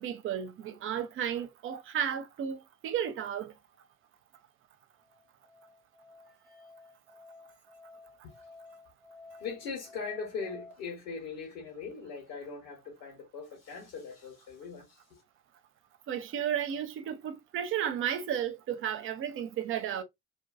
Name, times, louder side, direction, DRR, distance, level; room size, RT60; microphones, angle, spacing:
voice 1, 0.0-3.5 16.1-20.0, right 9 dB, 35° right, 0.4 m, -33 dB
Musical instrument, 5.0-10.7, left 3 dB, 70° right, 0.9 m, -53 dB
voice 2, 9.4-15.2, left 5 dB, 65° left, 1.0 m, -40 dB
2.5 x 2.2 x 2.3 m
figure-of-eight pair, 55°, 40 cm